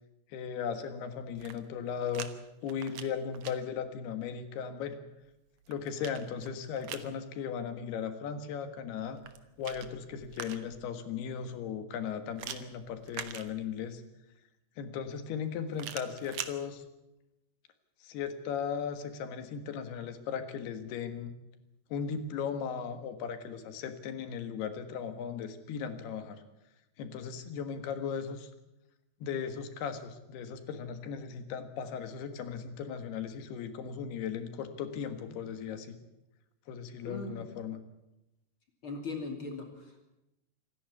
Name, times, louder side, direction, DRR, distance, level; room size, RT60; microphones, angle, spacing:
voice 1, 0.3-2.3 2.6-5.0 5.7-9.2 9.6-14.0 14.8-16.8 18.0-21.3 21.9-26.4 27.0-28.5 29.2-36.0 36.7-37.8, left 7 dB, 70° left, 9 dB, 3.4 m, -37 dB
sound 1, 1.2-2.3 2.6-3.5 5.3-7.1 9.1-10.9 12.4-14.0 15.7-16.5, right 9 dB, 80° right, 1.5 m, -43 dB
voice 2, 37.0-37.5 38.8-40.0, left 3 dB, 35° left, 3 dB, 2.8 m, -39 dB
26.0 x 11.5 x 9.6 m, 0.93 s
omnidirectional pair, 4.9 m